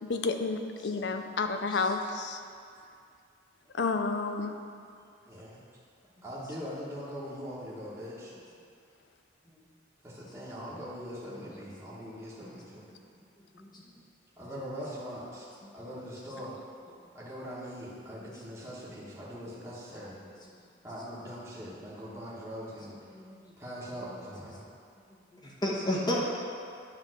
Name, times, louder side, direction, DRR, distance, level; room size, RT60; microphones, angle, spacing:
voice 1, 0.0-2.4 3.8-4.5, left 4 dB, 60° left, 6 dB, 0.5 m, -30 dB
voice 2, 5.2-5.6 6.2-8.3 10.0-12.9 14.4-15.5 15.7-16.6 17.1-20.2 20.8-22.9 23.6-24.6, equal, 15° right, -9 dB, 1.3 m, -41 dB
voice 3, 23.1-23.5 25.4-26.2, left 1 dB, 20° left, -5 dB, 1.2 m, -31 dB
9.8 x 3.5 x 6.4 m, 2.4 s
head